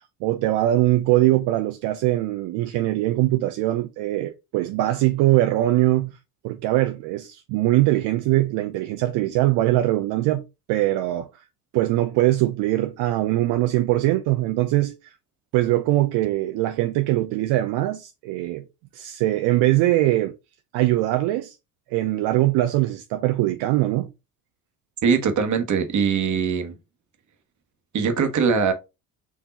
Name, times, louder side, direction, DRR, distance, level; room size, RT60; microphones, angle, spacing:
voice 1, 0.2-6.2 6.4-11.3 11.7-15.1 15.5-18.6 18.9-20.3 20.7-21.6 21.9-24.1, right 16 dB, 65° right, 0.6 m, -22 dB
voice 2, 25.0-26.8 27.9-28.7, right 6 dB, 40° right, 1.3 m, -21 dB
4.7 x 2.7 x 4.1 m
supercardioid pair, 90°, 43 cm